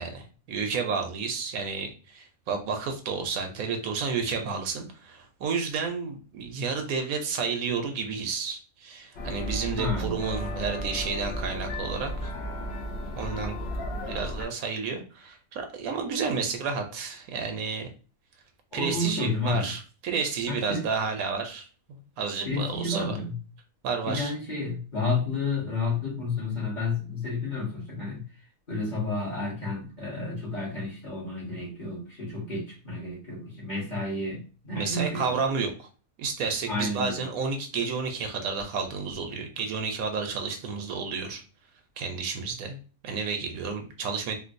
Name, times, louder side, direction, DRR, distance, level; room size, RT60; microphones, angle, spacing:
voice 1, 0.0-12.3 13.2-13.6 14.1-17.9 18.7-23.1 23.8-24.3 34.7-35.9 36.2-41.4 42.0-42.8 43.0-44.4, right 5 dB, 80° right, 5 dB, 1.1 m, -31 dB
sound 1, 9.2-14.5, equal, 60° left, 0.7 m, -34 dB
voice 2, 9.8-10.2 18.7-19.7 20.5-20.9 22.4-23.4 24.0-28.2 28.7-35.4 36.7-37.2, left 3 dB, 35° left, -5 dB, 1.4 m, -31 dB
3.7 x 2.4 x 2.6 m, 0.36 s
omnidirectional pair, 1.5 m